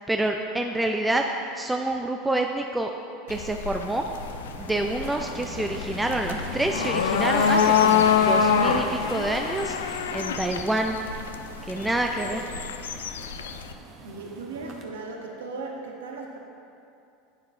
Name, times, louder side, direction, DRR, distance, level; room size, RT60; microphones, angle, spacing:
voice 1, 0.1-1.2 1.5-2.9 3.3-4.0 4.6-11.0 11.7-12.4, right 2 dB, 10° right, 3 dB, 0.5 m, -27 dB
sound 1, 3.3-13.7, left 7 dB, 85° left, 0.4 m, -25 dB
sound 2, 3.9-14.8, right 3 dB, 45° right, 1.1 m, -39 dB
voice 2, 14.0-16.4, right 3 dB, 85° right, 1 dB, 0.9 m, -37 dB
11.5 x 9.1 x 2.6 m, 2.6 s
hypercardioid pair, 90°, 0 cm